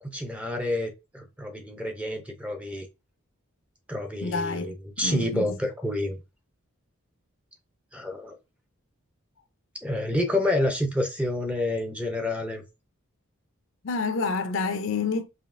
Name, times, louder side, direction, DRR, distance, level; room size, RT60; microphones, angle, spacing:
voice 1, 0.0-2.9 3.9-6.2 7.9-8.4 9.8-12.6, left 1 dB, 5° right, 0.5 m, -28 dB
voice 2, 4.2-5.6 13.8-15.2, left 4 dB, 60° left, 0.5 m, -29 dB
5.0 x 2.7 x 2.5 m
head